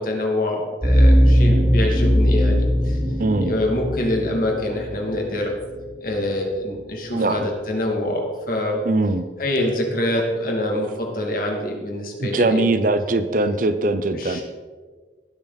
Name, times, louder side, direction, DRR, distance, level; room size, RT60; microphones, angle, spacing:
voice 1, 0.0-3.0 3.4-5.5 6.0-8.8 9.4-12.6 14.1-14.4, left 1 dB, 50° left, 0 dB, 2.5 m, -25 dB
sound 1, 0.8-5.6, equal, 20° right, 3.1 m, -19 dB
voice 2, 3.2-3.5 7.1-7.5 8.9-9.3 12.2-14.4, right 2 dB, 45° right, 11 dB, 0.6 m, -21 dB
19.5 x 6.9 x 4.1 m, 1.5 s
head